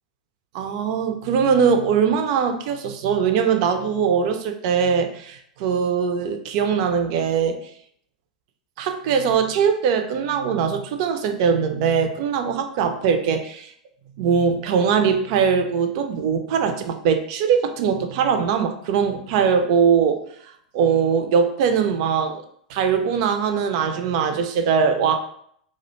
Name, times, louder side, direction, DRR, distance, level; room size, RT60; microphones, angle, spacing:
voice 1, 0.5-7.6 8.8-13.7 14.2-22.4 22.7-25.2, right 6 dB, 50° right, 7 dB, 0.4 m, -21 dB
2.4 x 2.1 x 3.0 m, 0.67 s
figure-of-eight pair, 95°, 4 cm